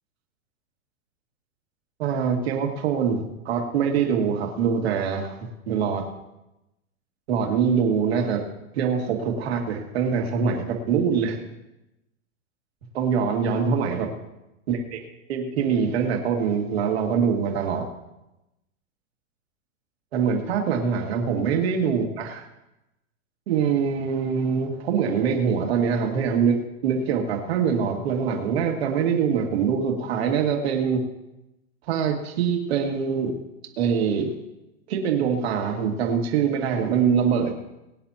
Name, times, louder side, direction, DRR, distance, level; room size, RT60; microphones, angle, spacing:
voice 1, 2.0-6.0 7.3-8.4 8.7-11.4 12.9-14.1 14.7-15.0 15.3-17.9 20.1-22.4 23.5-31.0 31.9-33.3 33.8-34.3 34.9-37.5, right 6 dB, 50° right, 2 dB, 2.3 m, -24 dB
22.5 x 9.8 x 2.9 m, 0.94 s
supercardioid pair, 175°, 39 cm